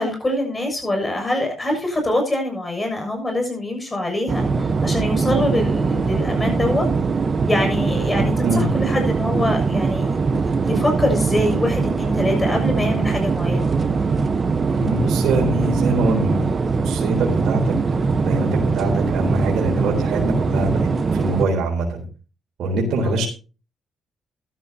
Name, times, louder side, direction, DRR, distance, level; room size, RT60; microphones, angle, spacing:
voice 1, 0.0-6.9 7.4-10.1 10.4-13.7 23.0-23.2, left 1 dB, 20° left, 4 dB, 6.9 m, -24 dB
sound 1, 4.3-21.5, right 4 dB, 35° right, 1.1 m, -21 dB
voice 2, 8.1-8.7 14.7-16.4 16.8-17.7 18.2-22.0 22.6-23.3, right 2 dB, 75° right, -1 dB, 3.9 m, -24 dB
15.0 x 12.0 x 2.9 m, 0.33 s
cardioid pair, 90°, 0 cm